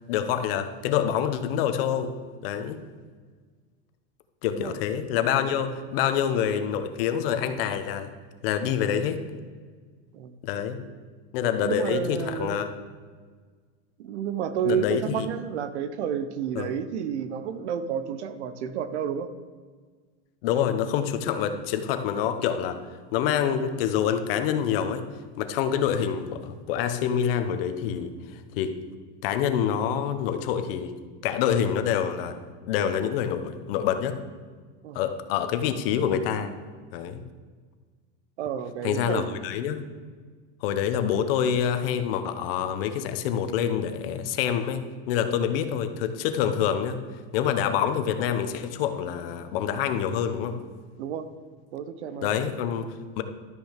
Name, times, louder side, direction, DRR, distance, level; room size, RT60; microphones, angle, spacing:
voice 1, 0.1-2.2 2.4-2.8 4.4-8.1 8.4-9.2 10.4-10.8 11.3-12.7 14.6-15.3 16.5-16.7 20.4-22.8 23.1-25.1 25.4-28.7 29.2-30.9 31.2-32.4 32.7-34.2 34.9-36.5 36.9-37.2 38.8-39.9 40.6-47.0 47.3-50.6 52.2-53.2, left 8 dB, 60° left, 9 dB, 1.1 m, -26 dB
voice 2, 11.6-12.6 14.0-19.3 34.8-35.0 38.4-39.2 51.0-51.3 51.7-52.3, right 8 dB, 90° right, 12 dB, 1.1 m, -30 dB
12.5 x 6.4 x 6.6 m, 1.5 s
supercardioid pair, 155°, 33 cm